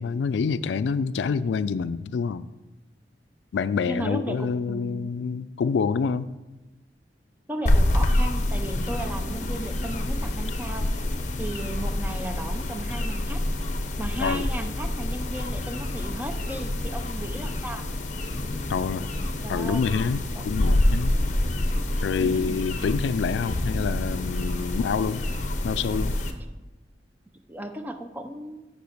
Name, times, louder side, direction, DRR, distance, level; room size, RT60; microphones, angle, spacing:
voice 1, 0.0-2.5 3.5-6.3 14.2-14.5 18.7-19.1 19.5-21.1 22.0-25.2 25.6-26.2, left 5 dB, 85° left, 15 dB, 0.3 m, -27 dB
voice 2, 3.8-5.1 7.5-10.9 11.4-13.4 14.0-17.8 19.4-19.9 20.4-20.5 22.2-22.6 27.5-28.6, right 1 dB, 10° right, 6 dB, 0.6 m, -35 dB
sound 1, 7.7-26.3, left 1 dB, 45° left, 0.7 m, -27 dB
6.8 x 5.2 x 6.5 m, 1.1 s
head